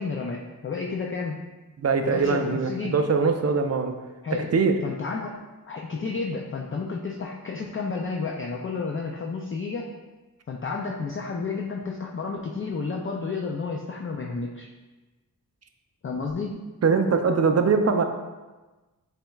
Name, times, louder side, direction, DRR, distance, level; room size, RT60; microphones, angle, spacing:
voice 1, 0.0-1.4 2.0-3.0 4.2-4.5 4.8-9.9 10.5-14.7 16.0-16.6, left 4 dB, 35° left, 0 dB, 0.4 m, -31 dB
voice 2, 1.8-3.9 4.3-4.7 16.8-18.0, right 5 dB, 45° right, 6 dB, 0.4 m, -22 dB
6.8 x 3.4 x 2.3 m, 1.2 s
wide cardioid pair, 110°, 36 cm